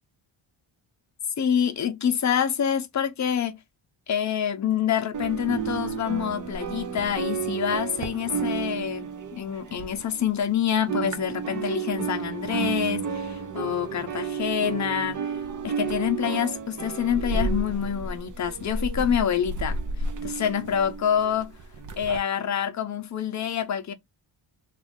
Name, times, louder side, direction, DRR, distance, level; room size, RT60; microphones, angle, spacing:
voice 1, 1.4-3.6 4.1-15.4 15.6-21.6 22.0-23.9, left 8 dB, 35° left, 0.6 m, -27 dB
sound 1, 5.1-10.5 10.7-22.2, right 5 dB, 40° right, 0.6 m, -32 dB
3.2 x 2.4 x 3.5 m
wide cardioid pair, 150°, 48 cm